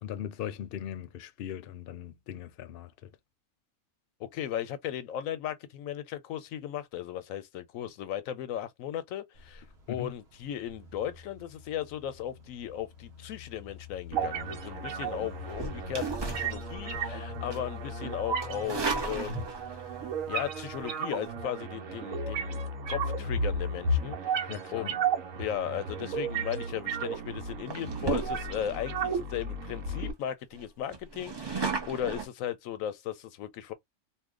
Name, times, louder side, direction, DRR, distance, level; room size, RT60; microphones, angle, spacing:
voice 1, 0.0-3.1 9.9-10.1 24.5-24.9, left 10 dB, 60° left, 0.6 m, -39 dB
voice 2, 4.2-19.5 20.3-25.0 25.4-33.7, left 10 dB, 90° left, 1.0 m, -36 dB
sound 1, 9.3-20.9, left 6 dB, 55° right, 1.1 m, -46 dB
sound 2, 14.1-30.1, right 3 dB, 80° right, 1.3 m, -34 dB
sound 3, 15.5-17.1 17.5-17.8 18.4-19.8 21.1-21.3 26.4-26.6 27.1-27.3 27.7-28.8 29.3-29.4 29.6-29.7 30.1-30.2 30.5-32.3, right 4 dB, 25° right, 0.6 m, -35 dB
2.8 x 2.1 x 3.6 m
omnidirectional pair, 1.4 m